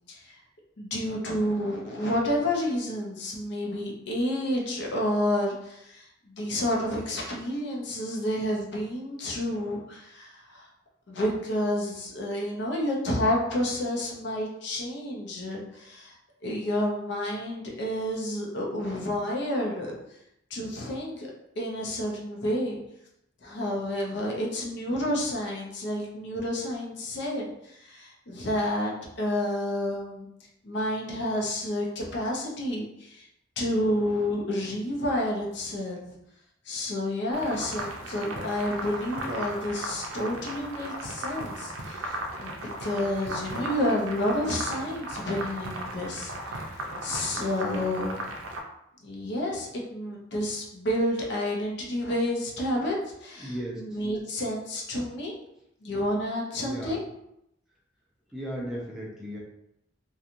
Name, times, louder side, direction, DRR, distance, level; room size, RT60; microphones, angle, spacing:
voice 1, 0.8-10.7 11.1-16.1 16.4-19.9 20.5-22.8 23.4-30.3 30.6-33.2 33.6-36.0 36.7-42.5 42.8-46.6 47.0-48.2 49.0-55.3 55.8-57.0, left 1 dB, 60° left, -1 dB, 0.6 m, -30 dB
sound 1, 37.3-48.6, right 1 dB, 90° right, 0.5 m, -36 dB
voice 2, 53.4-54.0 56.6-57.0 58.3-59.4, equal, 5° right, -5 dB, 0.4 m, -36 dB
2.9 x 2.3 x 2.5 m, 0.79 s
head